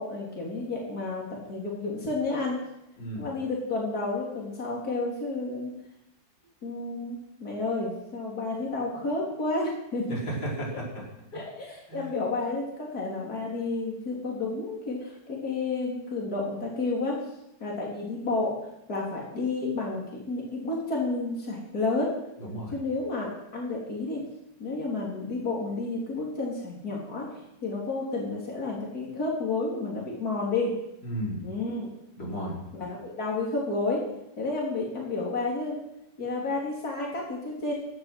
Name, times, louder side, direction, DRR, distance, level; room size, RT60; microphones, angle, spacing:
voice 1, 0.0-2.6 3.1-5.7 6.6-10.2 10.7-10.8 11.3-17.1 17.6-18.5 18.9-22.1 22.7-24.2 24.6-27.3 27.6-30.7 31.4-31.9 32.8-34.0 34.4-35.8 36.2-37.7, left 3 dB, 55° left, -3 dB, 4.0 m, -31 dB
voice 2, 3.0-3.3 10.1-11.1 11.3-11.4 11.9-12.1 22.4-22.8 31.0-31.4 32.2-32.6, right 1 dB, 90° left, -4 dB, 6.2 m, -34 dB
16.5 x 11.5 x 6.1 m, 0.84 s
omnidirectional pair, 1.9 m